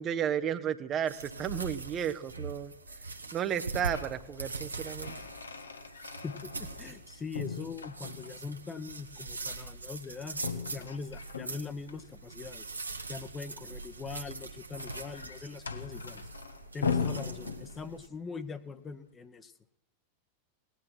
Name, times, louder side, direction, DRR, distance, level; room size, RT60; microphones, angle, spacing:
voice 1, 0.0-2.7 3.3-5.1, right 9 dB, 30° right, 11 dB, 0.7 m, -33 dB
sound 1, 1.1-18.1, right 3 dB, 80° right, 1.0 m, -42 dB
sound 2, 3.6-4.2 4.6-7.0 7.3-8.5 10.3-12.0 14.0-18.1, left 6 dB, 75° left, 0.9 m, -39 dB
voice 2, 6.2-10.4 10.7-12.7 13.1-16.2 16.7-19.5, left 4 dB, 20° left, 11 dB, 0.9 m, -42 dB
18.0 x 10.0 x 6.0 m, 0.88 s
figure-of-eight pair, 90°, 0 cm